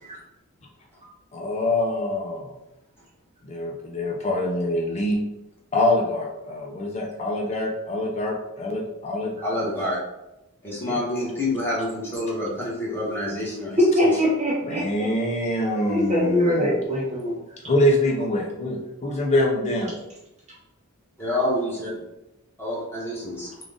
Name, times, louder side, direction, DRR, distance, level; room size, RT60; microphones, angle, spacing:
voice 1, 1.3-2.5 3.4-5.2 5.7-9.4 9.6-9.7 10.9-11.0 14.7-16.8 17.6-19.9, left 1 dB, 30° left, 0 dB, 0.5 m, -25 dB
voice 2, 9.4-10.0 10.6-14.1 21.2-22.0 22.6-23.6, left 1 dB, 10° left, -6 dB, 1.2 m, -28 dB
voice 3, 13.8-14.8 15.9-17.3, equal, 30° right, -6 dB, 0.8 m, -22 dB
3.7 x 2.4 x 3.6 m, 0.93 s
head